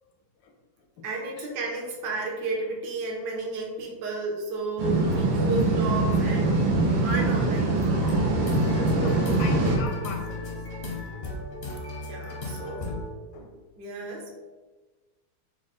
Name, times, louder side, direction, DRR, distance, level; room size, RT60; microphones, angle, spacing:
voice 1, 1.0-6.6 6.9-7.8 12.1-13.0 13.8-14.3, right 3 dB, 65° right, -1 dB, 1.2 m, -32 dB
sound 1, 4.8-9.8, right 2 dB, 90° right, 1.6 m, -23 dB
sound 2, 7.8-13.1, left 2 dB, 55° left, 0.6 m, -35 dB
voice 2, 8.9-10.5 11.9-12.1 13.3-13.5, left 3 dB, 80° left, 3 dB, 1.3 m, -37 dB
4.8 x 2.1 x 4.0 m, 1.3 s
omnidirectional pair, 2.1 m